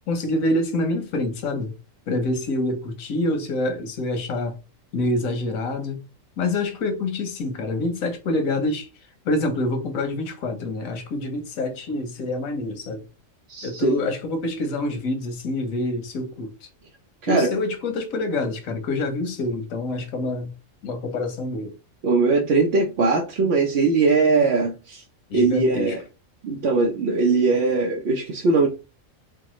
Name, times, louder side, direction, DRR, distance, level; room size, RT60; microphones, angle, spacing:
voice 1, 0.1-1.7 2.1-4.5 4.9-6.0 6.4-8.9 9.2-13.0 13.6-16.7 17.3-20.5 20.8-21.7 25.3-26.0, left 2 dB, 90° left, 1.2 m, -26 dB
voice 2, 13.5-14.0 17.2-17.5 22.0-25.0 25.3-26.0 26.4-28.7, right 3 dB, 60° right, 0.8 m, -20 dB
4.5 x 2.2 x 3.0 m
omnidirectional pair, 1.4 m